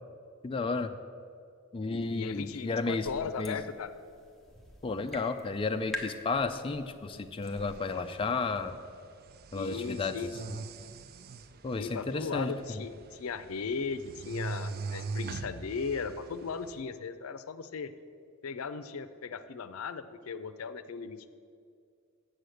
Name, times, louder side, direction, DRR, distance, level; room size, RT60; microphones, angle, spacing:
voice 1, 0.4-1.0 1.7-3.1 3.4-3.6 4.8-8.8 9.5-10.1 11.6-12.5, left 3 dB, 25° left, 7 dB, 0.4 m, -32 dB
voice 2, 1.8-3.9 9.5-10.3 11.8-17.9 18.4-21.3, left 5 dB, 90° left, 12 dB, 0.5 m, -37 dB
sound 1, 2.0-7.8, left 1 dB, ahead, 1.0 m, -46 dB
sound 2, 7.4-16.8, right 4 dB, 45° right, 0.4 m, -43 dB
7.8 x 6.5 x 7.7 m, 2.3 s
head